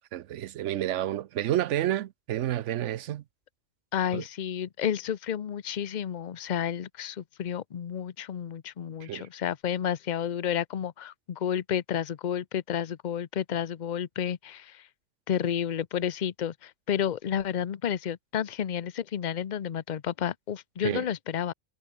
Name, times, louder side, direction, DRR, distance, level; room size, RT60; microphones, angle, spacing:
voice 1, 0.1-3.2 4.1-4.2 9.0-9.3 20.8-21.1, right 12 dB, 90° right, 1.0 m, -30 dB
voice 2, 3.9-14.8 15.3-21.5, left 9 dB, 45° left, 0.8 m, -31 dB
omnidirectional pair, 1.2 m